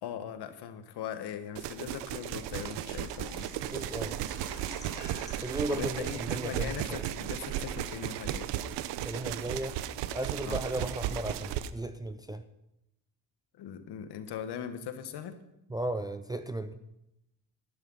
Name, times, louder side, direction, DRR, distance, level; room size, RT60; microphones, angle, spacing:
voice 1, 0.0-3.5 3.8-3.9 5.7-8.5 10.4-10.6 13.6-15.3, left 9 dB, 70° left, 9 dB, 1.5 m, -40 dB
sound 1, 1.6-11.7, right 11 dB, 85° right, 0.8 m, -35 dB
Water / Liquid, 2.6-8.3 8.5-8.6 9.1-9.2, left 2 dB, 10° left, 1.8 m, -54 dB
voice 2, 3.7-4.2 5.4-7.0 9.0-9.8 10.1-12.4 15.7-16.8, right 1 dB, 10° right, 8 dB, 0.4 m, -35 dB
sound 2, 4.5-8.4, left 6 dB, 25° left, 1.0 m, -58 dB
11.5 x 11.5 x 5.5 m, 0.84 s
cardioid pair, 130°, 41 cm